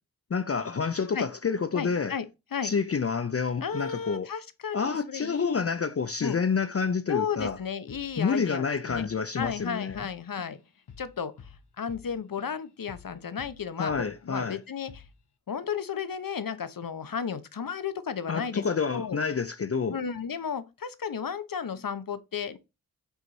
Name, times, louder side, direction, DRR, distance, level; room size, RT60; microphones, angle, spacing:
voice 1, 0.3-2.2 2.6-4.3 4.7-7.6 8.2-10.1 13.8-14.6 18.3-20.0, left 5 dB, 40° left, 0.5 m, -28 dB
voice 2, 1.7-2.3 2.5-2.7 3.6-5.6 6.2-6.4 7.1-9.1 9.4-10.6 11.0-11.3 11.8-15.0 15.5-18.6 18.9-19.2 19.9-22.6, left 7 dB, 60° left, 0.8 m, -33 dB
Drum kit / Drum, 7.4-7.6 7.9-8.6 8.9-9.1 9.4-12.6 12.9-14.1 14.4-14.6 14.9-15.2, left 6 dB, 85° left, 0.9 m, -49 dB
8.1 x 3.0 x 3.9 m
wide cardioid pair, 50°, 39 cm